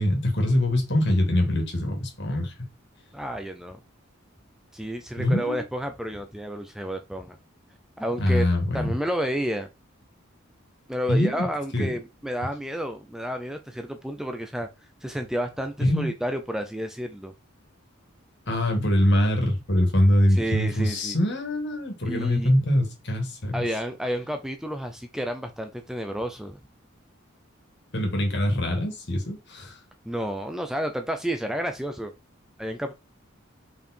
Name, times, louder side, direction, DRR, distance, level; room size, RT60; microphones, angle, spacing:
voice 1, 0.0-2.5 5.2-5.6 8.2-8.9 11.1-11.5 11.7-12.0 15.8-16.1 18.5-23.6 27.9-29.8, left 1 dB, 55° left, 2.4 m, -23 dB
voice 2, 3.1-3.8 4.7-7.4 8.0-8.5 8.7-9.7 10.9-14.7 15.0-17.3 20.3-21.2 22.1-22.5 23.5-26.6 30.0-32.1 32.6-32.9, equal, ahead, 0.6 m, -30 dB
5.5 x 4.9 x 4.5 m
head